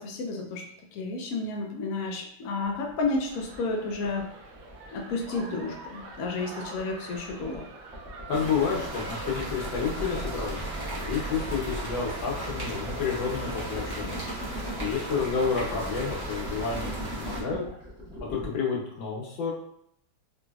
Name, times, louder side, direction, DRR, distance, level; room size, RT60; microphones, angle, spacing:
voice 1, 0.0-4.3 4.9-7.6, left 3 dB, 85° left, 1 dB, 0.7 m, -31 dB
sound 1, 2.6-18.5, equal, 5° right, 0.8 m, -41 dB
sound 2, 3.3-13.1, right 2 dB, 85° right, 1.4 m, -45 dB
voice 2, 8.3-14.2 14.8-17.6 18.3-19.5, left 5 dB, 70° left, -2 dB, 1.6 m, -30 dB
sound 3, 8.3-17.4, right 1 dB, 25° right, 0.5 m, -36 dB
4.0 x 3.0 x 2.3 m, 0.70 s
omnidirectional pair, 2.2 m